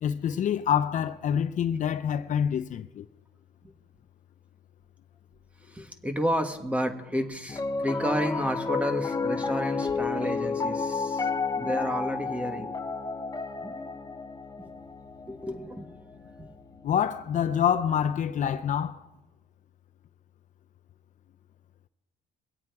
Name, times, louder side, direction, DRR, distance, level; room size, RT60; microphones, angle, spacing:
voice 1, 0.0-3.1 16.8-19.0, left 8 dB, 50° left, 0.6 m, -26 dB
voice 2, 5.7-11.3 11.6-12.7 13.6-14.3 14.6-14.7 15.3-15.9 16.4-16.5, equal, 10° right, 1.6 m, -31 dB
Piano, 7.5-17.9, left 4 dB, 20° left, 0.8 m, -32 dB
23.0 x 8.5 x 4.7 m
cardioid pair, 110°, 17 cm